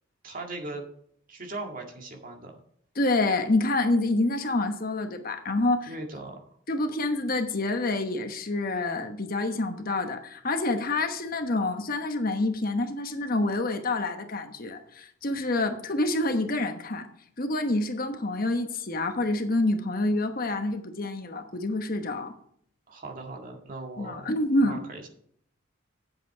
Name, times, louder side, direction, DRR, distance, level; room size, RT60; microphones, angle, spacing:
voice 1, 0.2-0.9 1.3-2.6 5.9-6.6 22.9-24.3 24.6-25.1, right 2 dB, 40° right, 2 dB, 2.0 m, -39 dB
voice 2, 3.0-5.9 6.7-17.1 17.4-22.3 24.0-24.8, left 2 dB, 45° left, 6 dB, 1.1 m, -27 dB
9.2 x 7.7 x 4.7 m, 0.66 s
head